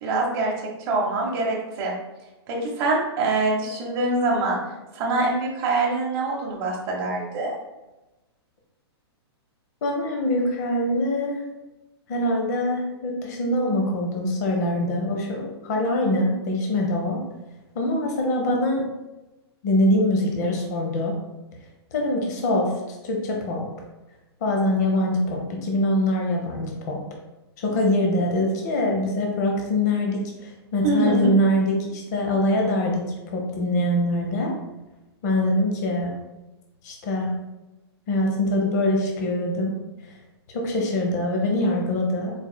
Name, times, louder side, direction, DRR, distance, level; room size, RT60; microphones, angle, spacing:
voice 1, 0.0-0.5 0.9-1.9 2.5-4.6 4.9-7.5 30.8-31.3, right 2 dB, 25° right, -3 dB, 0.9 m, -24 dB
voice 2, 9.8-11.4 12.1-17.2 17.7-18.9 19.6-21.1 21.9-23.6 24.4-27.0 27.6-33.0 33.3-34.5 35.2-36.1 36.8-37.3 38.1-39.8 40.5-42.3, left 1 dB, 40° left, 1 dB, 0.7 m, -23 dB
4.6 x 4.3 x 2.2 m, 1.0 s
hypercardioid pair, 170°, 14 cm